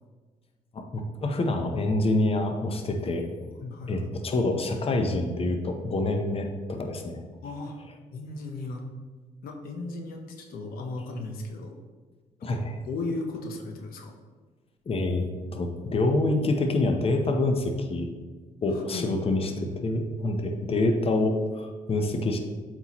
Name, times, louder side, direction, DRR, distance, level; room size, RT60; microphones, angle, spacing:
voice 1, 0.7-3.2 3.9-7.2 12.4-12.8 14.9-15.2 15.5-18.1 18.6-22.4, left 2 dB, 40° left, 4 dB, 0.8 m, -26 dB
voice 2, 3.4-4.0 7.4-7.8 8.1-8.9 9.4-11.8 12.4-14.1 18.7-20.0, left 2 dB, 90° left, 3 dB, 0.7 m, -36 dB
7.7 x 4.5 x 3.0 m, 1.4 s
cardioid pair, 80°, 15 cm